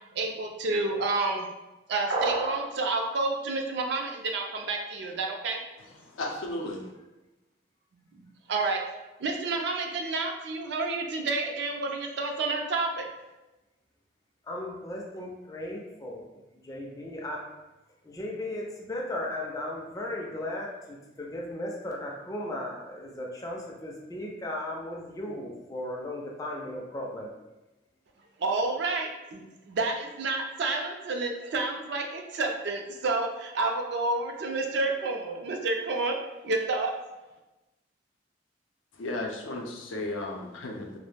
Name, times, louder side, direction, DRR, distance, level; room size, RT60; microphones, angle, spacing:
voice 1, 0.1-1.4 1.9-5.6 8.2-8.8 9.2-13.1 28.4-36.2 36.4-36.9, right 3 dB, 60° right, 2 dB, 0.4 m, -29 dB
sound 1, 2.1-2.7, right 2 dB, 80° right, 0.7 m, -28 dB
voice 2, 6.0-6.9 38.9-41.0, left 2 dB, 90° left, 1 dB, 0.4 m, -34 dB
voice 3, 14.4-16.3 16.6-17.5 18.0-27.3, left 1 dB, 20° left, -2 dB, 0.3 m, -36 dB
2.3 x 2.0 x 3.2 m, 1.0 s
head